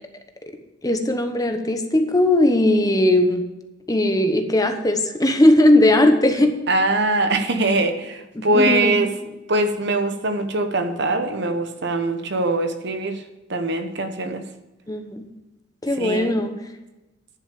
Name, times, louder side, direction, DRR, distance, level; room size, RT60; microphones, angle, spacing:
voice 1, 0.8-3.4 3.9-6.5 8.4-8.9 14.9-15.2 15.8-16.5, left 1 dB, 20° left, 6 dB, 1.0 m, -18 dB
voice 2, 6.7-9.1 9.5-13.2 13.5-14.4 16.0-16.5, right 2 dB, 60° right, 7 dB, 1.1 m, -22 dB
10.5 x 6.2 x 8.5 m, 1.0 s
head